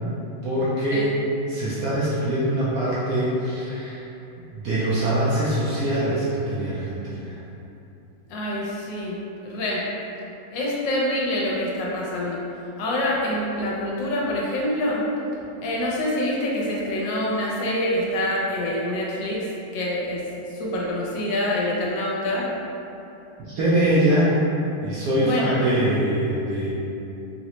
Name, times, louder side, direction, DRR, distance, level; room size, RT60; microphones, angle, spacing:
voice 1, 0.4-1.2 1.5-4.1 4.5-7.4 23.4-24.4 24.8-26.7, right 1 dB, 70° right, -9 dB, 0.9 m, -23 dB
voice 2, 8.3-9.9 10.5-12.4 12.8-15.0 15.6-19.5 19.7-20.2 20.5-22.5 25.2-25.7, left 1 dB, 80° left, -4 dB, 1.3 m, -26 dB
3.9 x 2.1 x 2.9 m, 2.8 s
omnidirectional pair, 2.0 m